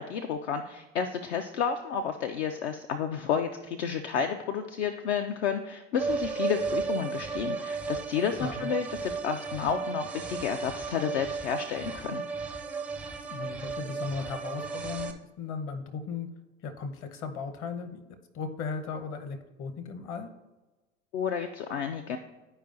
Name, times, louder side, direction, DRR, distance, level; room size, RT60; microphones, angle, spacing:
voice 1, 0.0-12.2 21.1-22.2, left 7 dB, 60° left, 6 dB, 0.6 m, -31 dB
sound 1, 5.9-15.1, right 5 dB, 5° right, 0.4 m, -34 dB
voice 2, 8.4-8.8 13.3-16.3 16.6-18.0 18.3-20.3, left 5 dB, 35° left, 8 dB, 0.9 m, -36 dB
11.0 x 4.8 x 2.6 m, 1.1 s
figure-of-eight pair, 85°, 38 cm